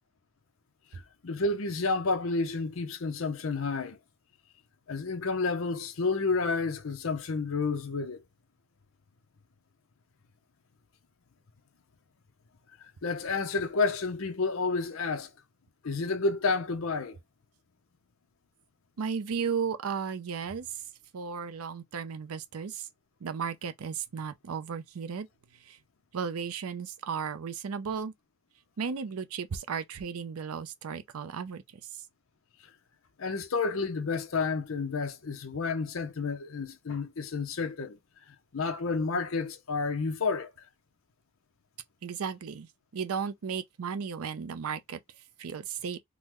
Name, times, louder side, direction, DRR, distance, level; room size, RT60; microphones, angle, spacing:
voice 1, 1.2-4.0 4.9-8.2 13.0-15.3 15.8-17.2 33.2-38.0 38.5-40.5, left 4 dB, 70° left, 0.6 m, -30 dB
voice 2, 19.0-20.8 21.1-22.9 23.2-25.3 25.6-25.8 26.1-28.1 28.8-31.6 42.0-45.0 45.4-46.0, right 6 dB, 85° right, 0.5 m, -35 dB
3.7 x 2.1 x 2.9 m
head